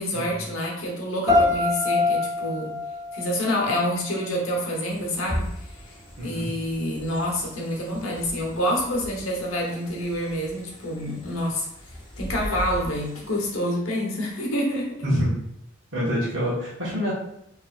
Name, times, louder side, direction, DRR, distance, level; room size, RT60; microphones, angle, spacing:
voice 1, 0.0-2.8 3.1-5.5 6.2-11.7 12.2-15.0, equal, 85° left, -1 dB, 1.1 m, -27 dB
sound 1, 1.3-4.3, left 3 dB, 15° right, 1.2 m, -25 dB
sound 2, 4.9-13.6, equal, 25° left, 0.8 m, -38 dB
voice 2, 6.2-6.5 15.0-15.3 15.9-17.1, equal, 70° right, -8 dB, 1.4 m, -26 dB
4.3 x 3.2 x 2.5 m, 0.76 s
head